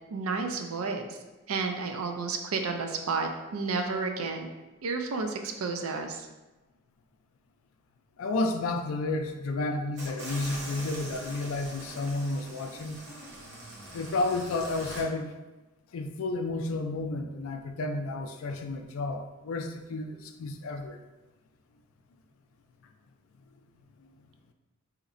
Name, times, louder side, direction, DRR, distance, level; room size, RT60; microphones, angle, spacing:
voice 1, 0.1-1.2 1.5-4.5 4.8-6.3, right 4 dB, 80° right, 4 dB, 0.4 m, -31 dB
voice 2, 8.2-13.0 13.9-15.3 15.9-21.0, left 2 dB, 75° left, 6 dB, 0.4 m, -31 dB
sound 1, 10.0-15.0, right 1 dB, 55° right, 0.8 m, -42 dB
4.0 x 2.8 x 2.5 m, 1.1 s
head